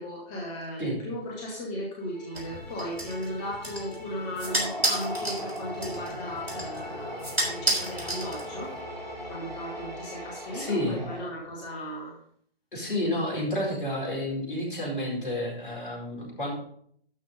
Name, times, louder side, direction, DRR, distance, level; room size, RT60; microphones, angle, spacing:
voice 1, 0.0-8.8 9.3-12.2 13.3-13.4, equal, 10° left, -2 dB, 0.6 m, -36 dB
sound 1, 2.0-10.8, equal, 75° left, 2.5 m, -46 dB
sound 2, 2.3-8.8, right 1 dB, 80° right, 3.6 m, -32 dB
sound 3, 4.4-11.5, equal, 45° right, 3.5 m, -39 dB
voice 2, 10.5-11.0 12.7-16.5, left 1 dB, 60° left, -2 dB, 4.7 m, -30 dB
12.0 x 5.0 x 5.1 m, 0.63 s
figure-of-eight pair, 140°, 30 cm